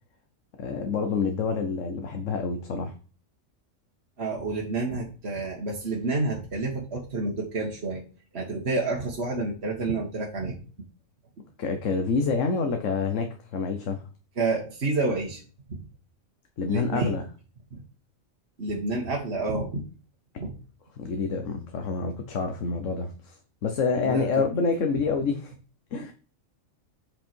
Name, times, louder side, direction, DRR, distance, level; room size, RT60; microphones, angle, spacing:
voice 1, 0.6-3.0 11.6-14.0 16.6-17.2 21.0-25.5 25.9-26.1, left 4 dB, 70° left, 5 dB, 1.3 m, -27 dB
voice 2, 4.2-8.0 8.3-10.6 14.4-15.4 15.7-15.8 16.7-17.2 17.7-17.8 18.6-19.8 20.4-20.5 24.0-24.5, right 3 dB, 55° right, -1 dB, 1.8 m, -29 dB
7.8 x 5.6 x 4.5 m, 0.37 s
omnidirectional pair, 1.4 m